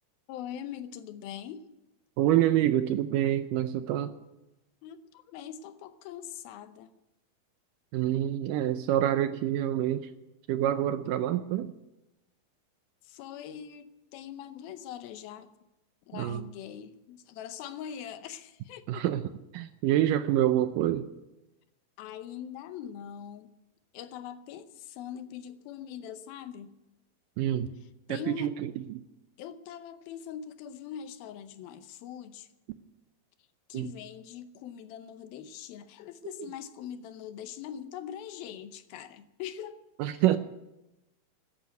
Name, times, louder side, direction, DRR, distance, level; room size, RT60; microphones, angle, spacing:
voice 1, 0.3-1.6 4.8-6.9 13.0-15.5 16.1-19.0 22.0-23.5 23.9-26.7 28.1-28.5 29.4-32.5 33.7-39.8 40.1-40.2, left 9 dB, 80° left, 11 dB, 2.7 m, -42 dB
voice 2, 2.2-4.2 7.9-10.1 10.5-11.7 16.1-16.5 18.9-19.2 19.5-21.1 27.4-27.7 28.1-29.0 33.7-33.9 36.4-36.5 40.0-40.4, right 12 dB, 80° right, 10 dB, 2.0 m, -27 dB
13.5 x 10.0 x 9.4 m, 0.95 s
omnidirectional pair, 4.3 m